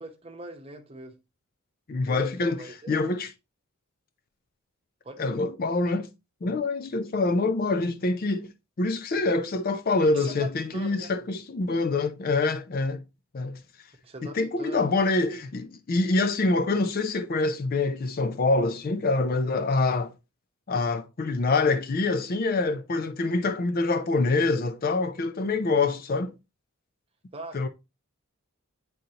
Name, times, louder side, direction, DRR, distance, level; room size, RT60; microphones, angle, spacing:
voice 1, 0.0-1.2 2.1-3.1 5.0-5.4 10.1-11.1 14.0-15.0 27.3-27.7, right 2 dB, 25° right, 0.9 m, -42 dB
voice 2, 1.9-2.6 2.9-3.3 5.2-6.1 6.4-8.5 8.8-13.0 13.3-13.6 14.2-20.1 20.7-26.3 27.5-27.7, left 3 dB, 40° left, 0.4 m, -25 dB
9.0 x 3.9 x 2.8 m
head